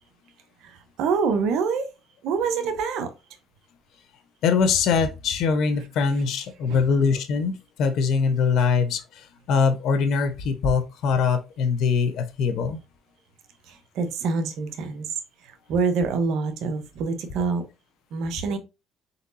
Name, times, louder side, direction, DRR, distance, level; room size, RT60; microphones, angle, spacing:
voice 1, 0.6-1.9 2.2-3.2 5.8-5.9 6.7-6.9 8.6-8.7 13.6-17.6 18.1-18.6, right 5 dB, 75° right, 0.9 m, -26 dB
voice 2, 4.4-12.8, left 5 dB, 70° left, 0.8 m, -23 dB
4.1 x 3.9 x 2.6 m
cardioid pair, 90°, 0 cm